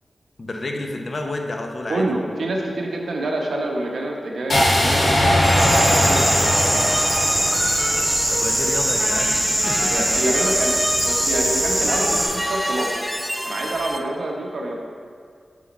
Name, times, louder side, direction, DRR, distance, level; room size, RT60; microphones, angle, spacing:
voice 1, 0.4-2.0 5.9-6.8 8.3-9.9, left 2 dB, 45° left, 3 dB, 0.6 m, -30 dB
voice 2, 1.9-6.2 9.9-12.9 13.4-14.7, right 1 dB, 75° right, 0 dB, 0.9 m, -27 dB
sound 1, 4.5-8.5, equal, 65° left, 1.7 m, -20 dB
sound 2, 5.4-14.0, equal, 5° left, 0.4 m, -28 dB
sound 3, 5.6-12.3, right 1 dB, 25° right, 1.3 m, -22 dB
6.1 x 5.7 x 4.1 m, 2.2 s
wide cardioid pair, 120°, 0 cm